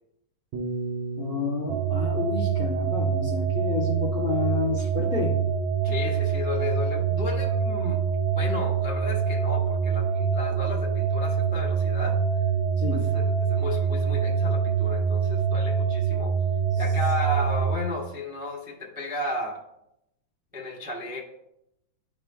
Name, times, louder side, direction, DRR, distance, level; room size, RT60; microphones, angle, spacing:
Piano, 0.5-5.0, right 3 dB, 65° right, 1.4 m, -38 dB
voice 1, 1.2-5.4 12.8-13.0 16.7-16.8, left 5 dB, 45° left, -1 dB, 0.7 m, -30 dB
sound 1, 1.7-17.8, right 6 dB, 80° right, 1.3 m, -25 dB
voice 2, 5.8-8.0 8.3-12.2 12.9-16.4 16.8-19.6 20.5-21.2, left 2 dB, 10° right, -3 dB, 0.4 m, -34 dB
11.5 x 4.9 x 2.2 m, 0.82 s
omnidirectional pair, 2.1 m